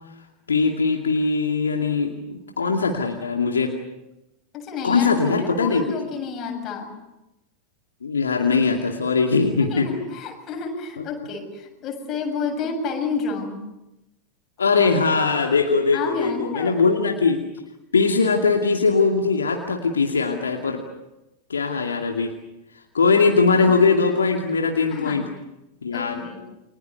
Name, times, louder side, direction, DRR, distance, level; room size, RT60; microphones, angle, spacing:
voice 1, 0.5-3.7 4.8-5.8 8.0-9.9 11.0-11.1 14.6-17.4 17.9-20.8 21.5-22.3 22.9-25.3 25.8-26.2, left 4 dB, 70° left, 2 dB, 2.4 m, -21 dB
voice 2, 4.5-6.9 9.6-13.6 15.9-16.8 23.5-23.7 24.9-25.3 25.9-26.4, left 4 dB, 30° left, 3 dB, 7.4 m, -30 dB
30.0 x 25.0 x 6.9 m, 0.94 s
figure-of-eight pair, 90°, 0 cm